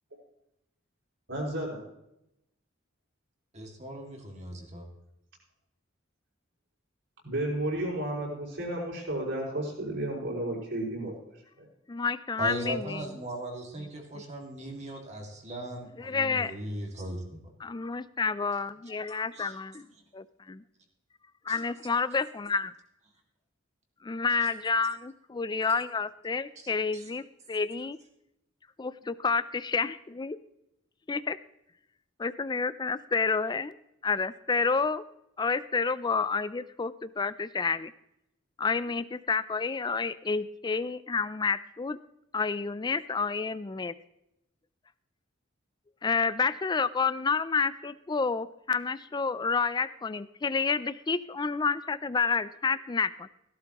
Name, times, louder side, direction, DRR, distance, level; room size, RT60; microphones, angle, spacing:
voice 1, 1.3-1.8 7.2-11.2 11.6-11.7, right 1 dB, 65° right, -3 dB, 5.4 m, -32 dB
voice 2, 3.5-4.8 12.4-17.4 19.3-19.5 21.5-21.6 26.9-27.0, right 1 dB, 35° right, 1 dB, 2.2 m, -38 dB
voice 3, 11.9-13.2 13.8-13.9 14.1-14.2 16.0-16.5 17.6-19.9 20.1-20.6 21.5-22.7 24.0-28.0 28.8-30.4 31.1-31.4 32.2-33.8 34.0-35.0 35.4-37.9 38.6-42.0 42.3-43.9 46.0-53.3, left 4 dB, 20° left, 15 dB, 0.4 m, -29 dB
17.0 x 12.0 x 3.0 m, 0.83 s
head